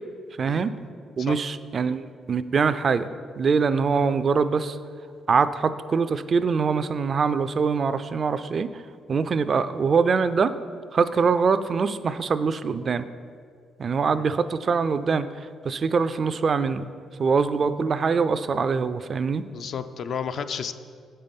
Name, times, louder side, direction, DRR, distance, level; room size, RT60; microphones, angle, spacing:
voice 1, 0.4-0.7 1.2-3.1 3.4-4.8 5.3-8.8 9.1-10.5 10.9-13.0 13.8-16.9 17.2-19.4, right 5 dB, 45° right, 12 dB, 0.3 m, -23 dB
voice 2, 19.4-20.7, left 7 dB, 60° left, 10 dB, 0.3 m, -32 dB
7.3 x 5.5 x 5.2 m, 2.2 s
cardioid pair, 90°, 0 cm